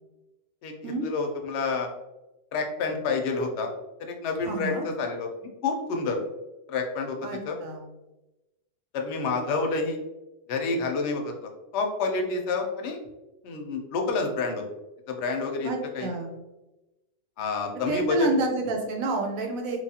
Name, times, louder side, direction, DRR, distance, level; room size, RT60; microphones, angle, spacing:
voice 1, 0.6-1.9 2.5-3.7 4.1-5.3 5.6-6.2 6.7-7.2 7.5-7.6 8.9-10.0 10.5-13.0 13.4-14.6 15.1-15.7 15.9-16.1 17.4-18.3, left 4 dB, 65° left, 3 dB, 0.7 m, -28 dB
voice 2, 4.4-4.8 7.2-7.9 15.6-16.4 17.9-19.8, right 2 dB, 85° right, 2 dB, 1.1 m, -29 dB
2.9 x 2.3 x 2.7 m, 1.0 s
omnidirectional pair, 1.4 m